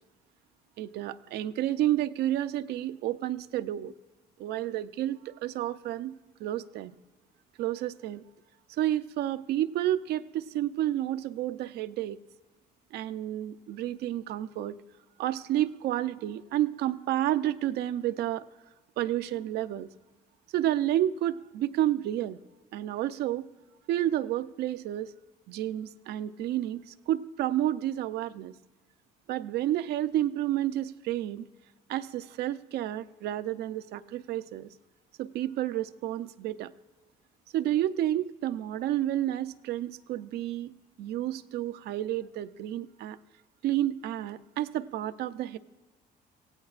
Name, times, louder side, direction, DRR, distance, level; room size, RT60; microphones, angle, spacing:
voice 1, 0.8-3.9 4.4-7.0 7.6-8.2 8.8-12.2 12.9-14.8 15.2-18.4 19.0-19.9 20.5-22.4 22.7-23.5 23.9-25.1 25.5-28.5 29.3-31.5 31.9-34.7 35.2-36.7 37.5-40.7 41.0-43.2 43.6-45.6, right 13 dB, 75° right, 11 dB, 0.5 m, -30 dB
24.0 x 16.0 x 2.4 m, 1.2 s
cardioid pair, 110°, 17 cm